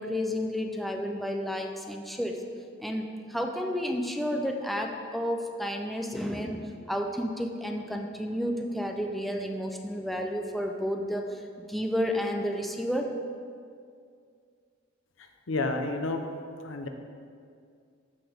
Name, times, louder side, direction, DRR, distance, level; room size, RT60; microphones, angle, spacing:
voice 1, 0.0-2.4 2.8-11.4 11.7-13.1, equal, ahead, 2 dB, 0.5 m, -31 dB
voice 2, 15.5-16.2 16.6-16.9, left 2 dB, 90° left, 5 dB, 0.8 m, -30 dB
13.5 x 5.9 x 3.5 m, 2.3 s
head